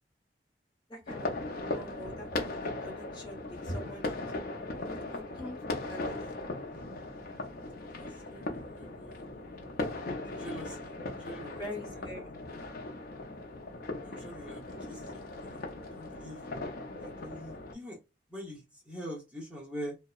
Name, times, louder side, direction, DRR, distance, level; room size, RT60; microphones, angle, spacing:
voice 1, 0.9-4.3 5.1-6.2 11.5-12.3, left 1 dB, 25° left, 0 dB, 0.9 m, -44 dB
sound 1, 1.1-17.7, left 2 dB, 55° left, 0.5 m, -38 dB
voice 2, 7.9-9.2 10.3-11.7 14.0-15.7 15.9-16.4 17.0-18.0 18.3-20.0, equal, 5° right, -4 dB, 0.7 m, -44 dB
2.7 x 2.0 x 2.3 m, 0.25 s
head